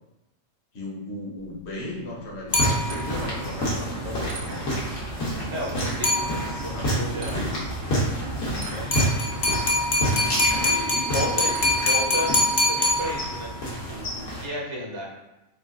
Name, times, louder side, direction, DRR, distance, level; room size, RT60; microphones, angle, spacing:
voice 1, 0.7-4.9 6.1-7.6, left 1 dB, 65° left, -3 dB, 0.9 m, -36 dB
sound 1, 2.5-14.4, equal, 85° left, 1.3 m, -29 dB
sound 2, 2.5-3.3 6.0-6.8 8.9-13.6, left 2 dB, 50° left, 0.6 m, -24 dB
sound 3, 2.8-12.3, right 2 dB, 85° right, 1.0 m, -40 dB
voice 2, 5.5-7.4 8.3-9.1 10.1-13.5 13.9-15.1, equal, 65° right, -3 dB, 1.1 m, -34 dB
3.7 x 2.3 x 2.4 m, 0.97 s
omnidirectional pair, 1.3 m